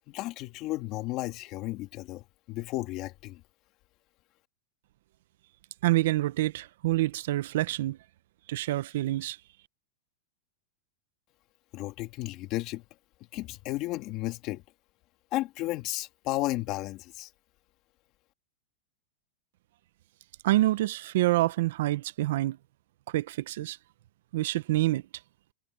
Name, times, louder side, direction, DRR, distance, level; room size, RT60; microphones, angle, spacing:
voice 1, 0.1-3.4 11.7-12.8 13.3-14.6 15.3-17.3, left 18 dB, 35° left, 2.3 m, -33 dB
voice 2, 5.8-8.0 8.5-9.4 20.4-22.6 23.1-23.8 24.3-25.0, right 16 dB, 65° right, 0.6 m, -27 dB
supercardioid pair, 155°, 0 cm